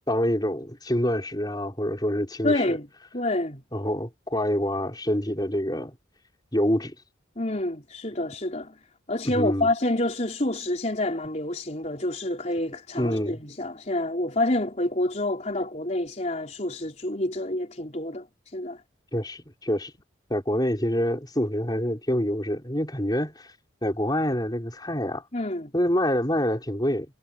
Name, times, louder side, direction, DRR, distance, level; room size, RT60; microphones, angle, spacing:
voice 1, 0.1-2.8 3.7-5.9 6.5-7.0 9.2-9.7 13.0-13.4 19.1-19.9 20.3-23.5 23.8-25.2 25.7-27.1, equal, 20° left, 5.3 m, -26 dB
voice 2, 2.4-2.9 3.1-3.6 7.4-8.7 9.1-18.3 18.5-18.8 25.3-25.7, left 1 dB, 35° left, 4.2 m, -28 dB
head